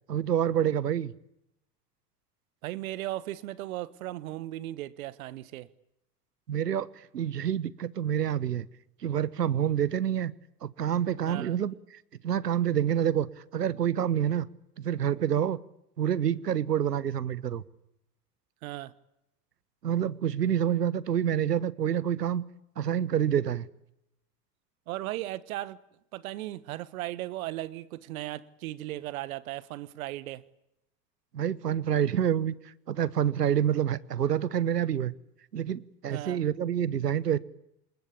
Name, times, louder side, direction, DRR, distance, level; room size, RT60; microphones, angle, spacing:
voice 1, 0.1-1.1 6.5-6.9 7.1-8.7 9.0-10.3 10.6-13.3 13.5-14.5 14.8-15.6 16.0-17.6 19.8-22.4 22.8-23.7 31.3-32.5 32.9-35.1 35.5-37.4, right 9 dB, 80° right, 1.2 m, -27 dB
voice 2, 2.6-5.7 11.3-11.6 18.6-18.9 24.9-25.8 26.1-30.4 36.1-36.4, right 15 dB, 60° right, 1.4 m, -36 dB
27.5 x 21.5 x 8.6 m
figure-of-eight pair, 80°, 48 cm